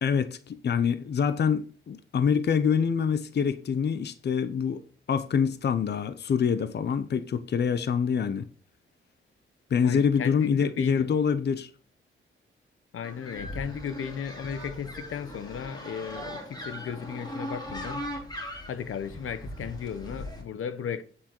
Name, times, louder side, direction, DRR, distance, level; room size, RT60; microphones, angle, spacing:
voice 1, 0.0-4.8 5.1-8.5 9.7-11.7, left 6 dB, 55° left, 0.8 m, -25 dB
voice 2, 9.8-11.1 12.9-18.1 18.7-21.0, left 7 dB, 85° left, 1.1 m, -35 dB
sound 1, 13.0-20.4, equal, 20° left, 3.7 m, -39 dB
9.3 x 7.7 x 4.5 m
wide cardioid pair, 120°, 21 cm